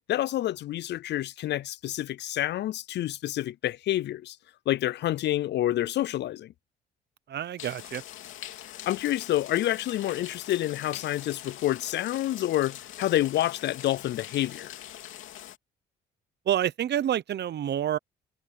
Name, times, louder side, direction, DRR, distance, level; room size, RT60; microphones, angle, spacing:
voice 1, 0.1-4.4 4.7-6.5 8.9-14.7, left 13 dB, 60° left, 0.4 m, -28 dB
voice 2, 7.3-8.0 16.5-18.0, right 10 dB, 60° right, 0.8 m, -28 dB
sound 1, 7.6-15.6, left 12 dB, 80° left, 2.7 m, -43 dB
cardioid pair, 90°, 20 cm